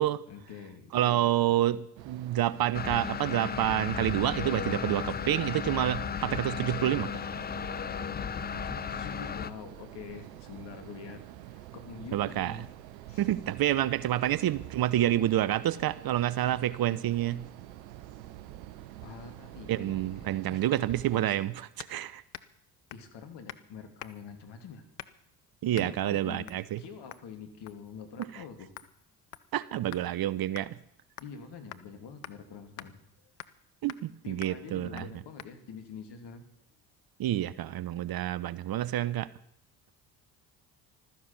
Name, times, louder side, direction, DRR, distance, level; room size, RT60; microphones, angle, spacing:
voice 1, 0.3-1.6 8.5-12.7 13.1-13.3 19.0-20.8 21.3-21.4 22.9-24.8 25.7-26.5 26.8-28.7 31.2-33.3 34.2-36.4, left 6 dB, 55° left, 7 dB, 3.0 m, -46 dB
voice 2, 0.9-7.1 12.1-12.6 13.2-17.4 19.7-22.2 25.6-26.8 29.5-30.8 33.8-35.0 37.2-39.3, right 13 dB, 45° right, 18 dB, 0.9 m, -28 dB
sound 1, 2.0-21.3, right 14 dB, 80° right, 1.0 m, -47 dB
sound 2, 2.7-9.5, left 7 dB, 20° left, 0.5 m, -35 dB
sound 3, 21.8-22.0 22.3-22.6 22.9-23.1 23.5-23.7 24.0-24.3 25.0-25.3 25.7-25.9 26.5-26.7 27.1-27.3 27.7-27.9 28.2-28.3 28.8-30.1 30.6-30.7 31.2-31.4 31.7-31.9 32.2-32.4 32.8-32.9 33.4-33.6 33.9-34.1 34.4-34.6 35.0-35.1 35.4-35.5, left 15 dB, 80° left, 0.8 m, -46 dB
15.5 x 13.5 x 6.0 m, 0.74 s
hypercardioid pair, 55°, 49 cm